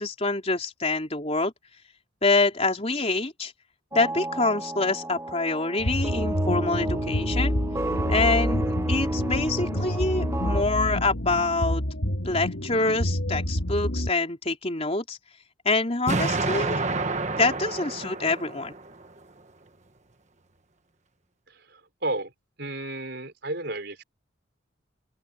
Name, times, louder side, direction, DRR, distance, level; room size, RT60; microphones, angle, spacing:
voice 1, 0.0-1.5 2.2-3.5 3.9-7.5 8.1-11.8 12.2-15.2 15.6-16.8 17.4-18.7, left 3 dB, 30° left, 3.7 m, -26 dB
sound 1, 3.9-10.6, right 1 dB, 15° right, 1.0 m, -32 dB
sound 2, 5.8-14.1, equal, 75° left, 2.8 m, -28 dB
Explosion, 16.1-19.1, right 3 dB, 35° right, 1.4 m, -28 dB
voice 2, 21.5-22.3 22.6-24.0, right 2 dB, 55° right, 5.2 m, -33 dB
open air
head